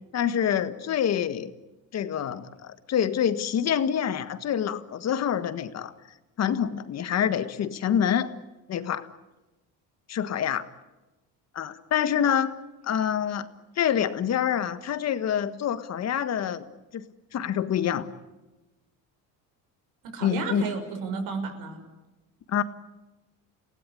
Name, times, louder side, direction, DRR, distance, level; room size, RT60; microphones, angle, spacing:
voice 1, 0.1-1.5 1.9-5.9 6.4-8.3 8.7-9.1 10.1-10.6 11.5-12.6 12.8-13.4 13.8-16.6 16.9-17.1 17.3-18.1 20.2-20.7 22.5-22.6, left 9 dB, 45° left, 11 dB, 1.7 m, -26 dB
voice 2, 20.1-21.8, right 5 dB, 75° right, 5 dB, 6.2 m, -32 dB
29.5 x 17.5 x 9.9 m, 1.1 s
cardioid pair, 125°, 35 cm